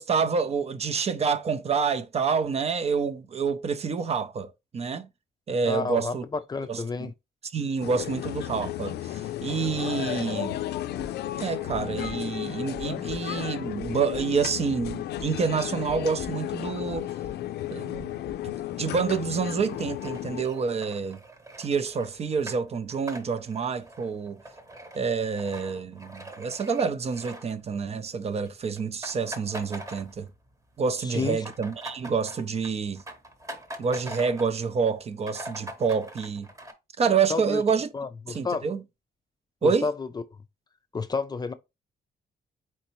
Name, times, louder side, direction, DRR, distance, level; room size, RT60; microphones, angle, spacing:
voice 1, 0.0-5.1 5.5-6.2 6.7-7.1 7.5-10.6 11.4-17.1 17.7-21.2 21.6-24.4 24.9-30.3 30.8-33.0 33.8-36.5 37.0-37.9 38.3-38.8 39.6-39.9, right 5 dB, 40° right, 0.5 m, -28 dB
voice 2, 5.6-7.1 31.0-31.4 37.3-37.6 37.9-38.7 39.6-40.1 40.9-41.5, left 4 dB, 25° left, 0.4 m, -30 dB
sound 1, 7.8-20.4, left 13 dB, 85° left, 0.4 m, -33 dB
sound 2, 11.0-15.6 15.8-16.6 16.9-17.5 17.9-18.5, equal, 85° right, 2.0 m, -46 dB
sound 3, 19.7-28.1 28.3-28.5 28.8-30.5 30.9-34.6 35.0-35.1 35.2-36.7, right 1 dB, 20° right, 1.0 m, -43 dB
4.4 x 4.0 x 3.0 m
cardioid pair, 130°, 17 cm